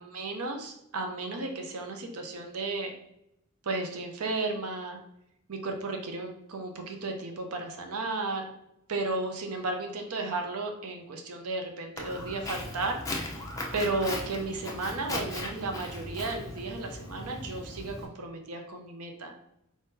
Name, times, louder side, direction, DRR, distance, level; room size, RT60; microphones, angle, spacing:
voice 1, 0.0-2.9 3.6-5.0 5.5-8.5 8.9-13.0 13.7-19.3, right 3 dB, 85° right, 3 dB, 0.6 m, -34 dB
Walk footsteps, 12.0-18.1, left 1 dB, 15° left, 0.7 m, -38 dB
4.7 x 3.6 x 2.7 m, 0.80 s
head